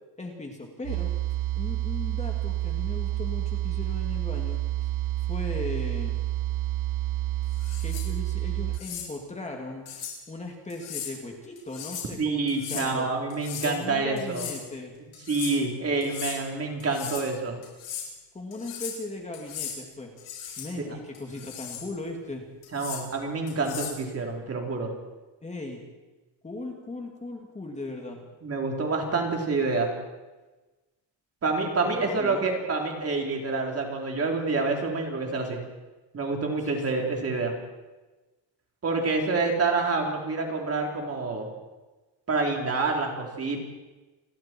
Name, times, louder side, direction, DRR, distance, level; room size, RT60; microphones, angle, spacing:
voice 1, 0.2-1.1 1.5-4.9 5.3-6.1 7.8-9.9 10.3-13.1 13.6-14.9 18.3-20.1 20.6-22.4 25.4-25.8 26.4-28.2 31.8-32.5 36.6-36.7, left 2 dB, 15° left, 1 dB, 2.5 m, -37 dB
sound 1, 0.8-8.8, right 14 dB, 85° right, 1.0 m, -29 dB
sound 2, 7.5-8.1 8.7-9.1 9.9-10.2 10.7-11.1 11.6-12.1 12.5-12.9 13.3-13.8 14.2-14.6 15.1-15.5 16.0-16.4 16.8-17.3 17.6-18.1 18.5-19.0 19.3-19.8 20.2-20.7 21.1-21.9 22.6-23.0 23.5-24.0, left 8 dB, 85° left, 7.3 m, -37 dB
voice 2, 12.2-14.5 15.3-17.6 22.7-24.9 28.4-29.9 31.4-35.6 36.1-37.5 38.8-41.5 42.3-43.6, right 3 dB, 30° right, 1 dB, 3.9 m, -27 dB
29.0 x 21.5 x 4.6 m, 1.2 s
cardioid pair, 165°, 46 cm